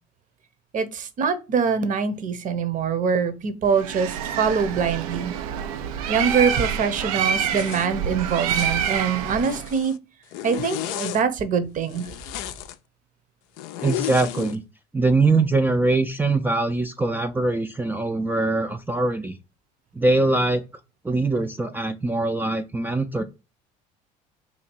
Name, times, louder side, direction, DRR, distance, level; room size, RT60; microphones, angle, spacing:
voice 1, 0.7-5.3 6.1-9.9 10.4-12.1, right 6 dB, 45° right, 11 dB, 0.8 m, -24 dB
Bird, 3.7-9.8, right 8 dB, 90° right, 0.4 m, -27 dB
Zipper (clothing), 7.5-7.9 8.3-8.8 9.3-10.0 10.3-11.2 11.9-12.8 13.6-14.6, left 12 dB, 75° left, 0.4 m, -33 dB
voice 2, 13.8-14.6 14.9-19.4 20.0-20.6 21.0-23.2, right 2 dB, 10° right, 6 dB, 0.4 m, -22 dB
2.8 x 2.7 x 4.4 m, 0.29 s
supercardioid pair, 75°, 18 cm